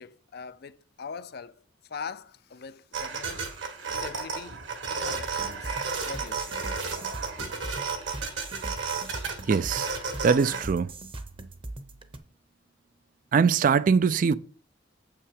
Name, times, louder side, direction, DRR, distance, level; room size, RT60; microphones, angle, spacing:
voice 1, 0.0-1.5 1.9-3.5 4.0-4.6 5.0-6.6, left 5 dB, 55° left, 0.5 m, -42 dB
sound 1, 2.9-10.6, right 5 dB, 75° right, 1.7 m, -33 dB
sound 2, 5.2-12.2, right 2 dB, 30° right, 0.8 m, -41 dB
voice 2, 9.5-10.0 10.2-10.9 13.3-14.3, right 5 dB, 45° right, 0.3 m, -22 dB
7.8 x 5.9 x 4.9 m
head